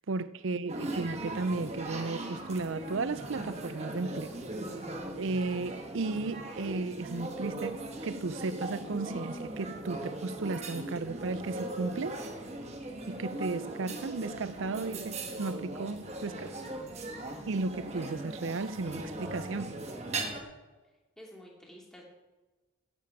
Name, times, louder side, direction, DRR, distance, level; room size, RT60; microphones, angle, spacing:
voice 1, 0.1-4.3 5.1-12.2 13.1-16.5 17.5-19.8, right 3 dB, 80° right, 0.6 m, -34 dB
sound 1, 0.7-20.4, right 2 dB, 35° right, 1.3 m, -39 dB
voice 2, 16.3-16.8 17.1-17.7 21.2-22.0, equal, 5° left, 2.4 m, -52 dB
15.0 x 8.2 x 4.8 m
head